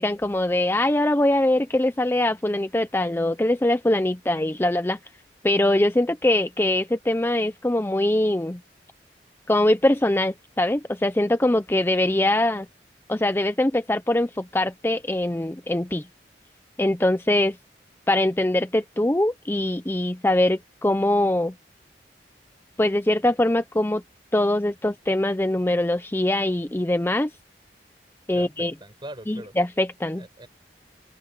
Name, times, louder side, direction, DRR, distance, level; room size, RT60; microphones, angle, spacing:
voice 1, 0.0-5.0 5.4-8.6 9.5-12.7 13.1-16.1 16.8-17.6 18.1-21.5 22.8-24.0 24.3-27.3 28.3-28.7 29.3-30.3, left 1 dB, 15° left, 0.5 m, -22 dB
voice 2, 28.3-29.6 30.2-30.5, right 1 dB, 25° right, 6.1 m, -41 dB
head